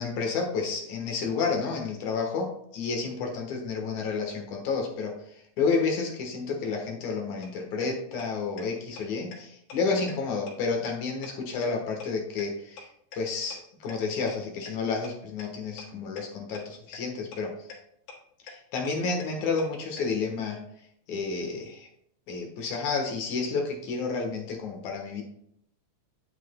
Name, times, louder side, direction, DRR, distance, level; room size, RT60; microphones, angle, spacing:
voice 1, 0.0-12.9 13.1-17.5 18.4-20.6 21.1-21.9 22.3-25.2, left 4 dB, 60° left, 1 dB, 2.1 m, -30 dB
sound 1, 7.4-7.5 7.8-7.9 8.2-8.3 8.6-8.7 9.0-9.1 9.3-9.4 9.7-9.8 10.1-10.2 10.5-10.6 10.9-11.0 11.2-11.3 11.6-11.7 12.0-12.1 12.4-12.5 12.8-12.9 13.1-13.2 13.5-13.6 13.9-14.0 14.3-14.4 14.7-14.8 15.0-15.1 15.4-15.5 15.8-15.9 16.2-16.3 16.5-16.6 16.9-17.0 17.3-17.4 17.7-17.8 18.1-18.2 18.5-18.6 18.9-19.0 19.2-19.3 19.6-19.7 20.0-20.1, left 5 dB, 90° left, 3.5 m, -42 dB
10.5 x 8.2 x 2.2 m, 0.72 s
omnidirectional pair, 4.6 m